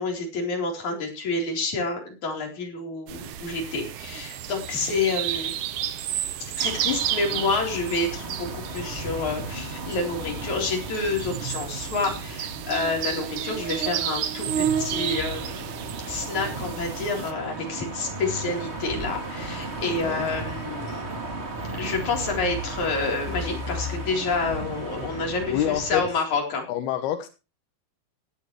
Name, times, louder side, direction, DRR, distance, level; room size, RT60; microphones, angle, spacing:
voice 1, 0.0-5.5 6.6-15.7 16.0-21.1 21.8-26.7, left 3 dB, 50° left, 1 dB, 5.3 m, -28 dB
sound 1, 3.1-17.3, right 10 dB, 70° right, 2.3 m, -32 dB
sound 2, 6.6-26.1, right 2 dB, 20° right, 2.1 m, -35 dB
voice 2, 19.9-20.3 25.5-26.0 26.7-27.3, left 11 dB, 90° left, 8 dB, 3.2 m, -27 dB
17.0 x 12.5 x 3.2 m, 0.31 s
omnidirectional pair, 4.4 m